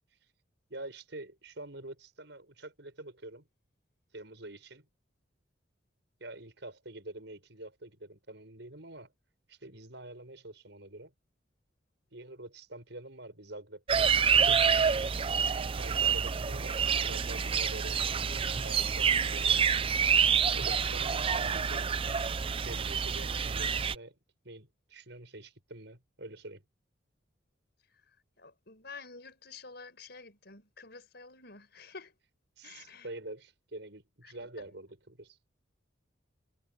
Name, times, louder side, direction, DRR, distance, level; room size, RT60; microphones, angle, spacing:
voice 1, 0.7-3.5 4.1-4.9 6.2-9.1 9.5-11.1 12.1-19.6 20.5-21.9 22.6-24.2 24.4-26.6 32.6-35.4, right 2 dB, 65° right, 7.0 m, -46 dB
sound 1, 13.9-23.9, right 6 dB, 30° right, 0.4 m, -27 dB
voice 2, 28.4-32.1 32.6-33.1 34.2-34.7, left 4 dB, 60° left, 5.9 m, -49 dB
head